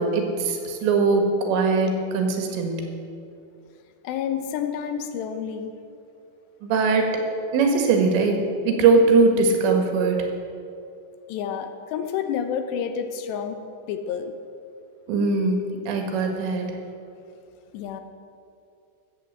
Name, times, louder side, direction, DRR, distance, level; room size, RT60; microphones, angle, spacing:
voice 1, 0.0-2.9 6.6-7.1 7.5-10.3 15.1-15.6 15.9-16.7, right 4 dB, 90° right, 3 dB, 3.8 m, -21 dB
voice 2, 4.0-5.7 11.3-13.6 13.9-14.3 17.7-18.0, left 8 dB, 80° left, 7 dB, 3.0 m, -29 dB
13.0 x 7.8 x 8.0 m, 2.5 s
omnidirectional pair, 5.0 m